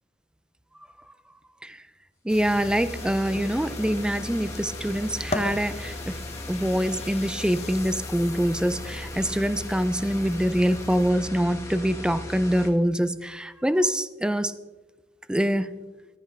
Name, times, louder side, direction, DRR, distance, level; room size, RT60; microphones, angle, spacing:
voice 1, 2.2-6.2 6.5-14.5 15.3-15.8, equal, 5° right, 13 dB, 0.4 m, -25 dB
sound 1, 2.3-11.1, left 3 dB, 35° left, 0.7 m, -39 dB
sound 2, 2.3-12.7, left 1 dB, 15° left, 1.4 m, -38 dB
15.0 x 13.0 x 3.3 m, 1.2 s
head